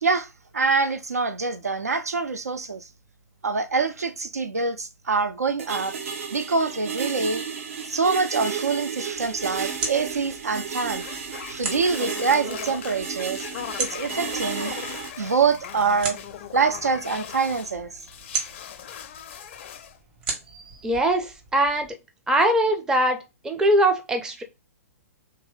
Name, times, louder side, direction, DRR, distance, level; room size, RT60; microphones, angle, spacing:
voice 1, 0.0-2.9 3.4-5.9 6.3-7.4 7.8-11.0 11.5-13.5 13.8-14.9 15.2-16.2 16.5-18.0, right 4 dB, 80° right, 0.5 m, -25 dB
sound 1, 5.6-15.1, right 6 dB, 60° right, 0.9 m, -33 dB
sound 2, 9.1-21.9, right 4 dB, 40° right, 1.5 m, -38 dB
sound 3, 11.0-17.7 18.0-20.0, left 9 dB, 45° left, 0.4 m, -39 dB
voice 2, 20.5-21.9 22.3-24.4, right 1 dB, 5° right, 0.5 m, -22 dB
3.0 x 2.7 x 4.0 m
figure-of-eight pair, 115°, 8 cm